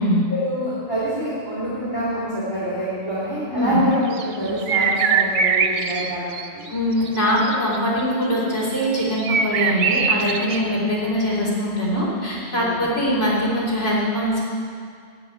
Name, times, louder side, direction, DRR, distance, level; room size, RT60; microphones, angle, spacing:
voice 1, 0.3-6.7 12.5-12.8, equal, 25° right, -11 dB, 3.1 m, -26 dB
sound 1, 4.1-6.7 7.1-8.0 9.2-10.6, right 6 dB, 90° right, 1.1 m, -22 dB
voice 2, 6.7-14.4, equal, 90° left, -6 dB, 3.5 m, -22 dB
13.5 x 5.3 x 9.3 m, 2.2 s
omnidirectional pair, 1.2 m